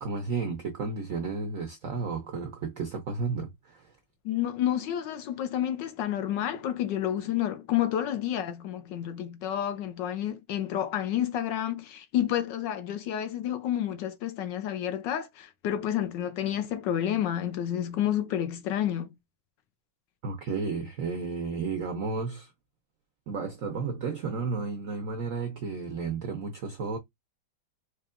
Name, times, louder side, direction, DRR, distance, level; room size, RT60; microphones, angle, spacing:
voice 1, 0.0-3.9 20.2-22.5 23.3-27.0, right 4 dB, 70° right, 0.7 m, -32 dB
voice 2, 4.2-19.2, left 11 dB, 75° left, 1.1 m, -30 dB
4.6 x 2.8 x 2.4 m
omnidirectional pair, 2.2 m